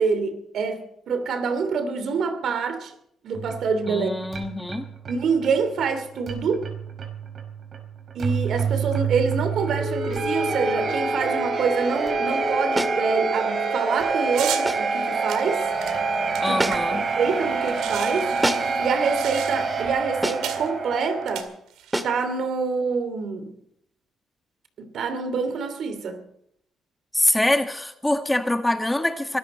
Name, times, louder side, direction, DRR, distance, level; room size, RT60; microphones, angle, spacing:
voice 1, 0.0-2.9 3.2-4.1 5.1-6.7 8.1-15.7 16.4-16.7 17.2-18.3 18.6-21.5 22.0-23.5 24.8-26.2, right 5 dB, 70° right, 2.7 m, -26 dB
sound 1, 3.3-21.4, right 4 dB, 50° right, 5.1 m, -27 dB
voice 2, 3.9-4.9 16.4-17.0 27.1-29.4, left 1 dB, 10° left, 1.7 m, -24 dB
sound 2, 12.8-13.1 14.7-15.0 16.6-17.0 18.4-18.8 20.2-20.6 21.9-22.2, right 1 dB, 15° right, 2.0 m, -27 dB
sound 3, 14.3-14.7 15.3-17.1 17.4-17.5 17.6-19.8 20.4-20.7 21.2-22.0, right 10 dB, 90° right, 2.1 m, -34 dB
23.5 x 14.0 x 4.3 m
cardioid pair, 90°, 0 cm